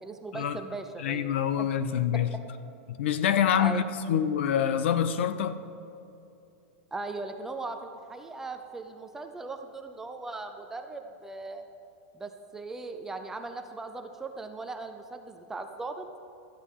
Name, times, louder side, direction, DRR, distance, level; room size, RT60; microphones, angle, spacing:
voice 1, 0.0-1.7 2.1-2.4 3.5-3.8 6.9-11.6 12.1-16.0, right 3 dB, 5° right, 6 dB, 0.4 m, -39 dB
voice 2, 1.0-2.3 2.9-5.6, left 9 dB, 60° left, 12 dB, 0.8 m, -26 dB
17.5 x 13.0 x 3.7 m, 2.7 s
supercardioid pair, 180°, 7 cm